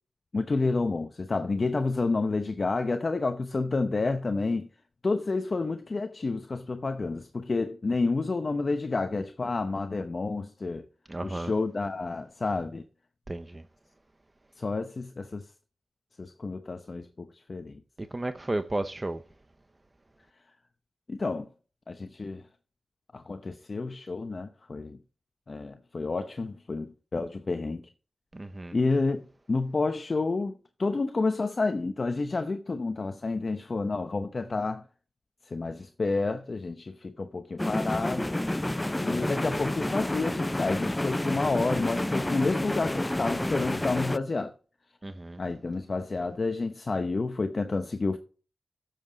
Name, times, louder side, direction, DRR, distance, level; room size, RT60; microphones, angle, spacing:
voice 1, 0.3-4.7 5.0-10.9 11.2-12.8 14.6-15.4 16.2-17.8 21.1-21.5 21.9-22.4 23.1-25.0 25.5-27.8 28.7-34.8 35.5-38.4 39.0-44.5 45.4-48.2, left 3 dB, 50° left, 0.8 m, -30 dB
voice 2, 11.1-11.5 13.3-13.6 18.0-19.2 28.3-28.7 45.0-45.4, right 2 dB, 30° right, 0.8 m, -33 dB
sound 1, 37.6-44.2, left 1 dB, 15° left, 0.4 m, -29 dB
10.5 x 7.6 x 4.0 m
cardioid pair, 45°, 0 cm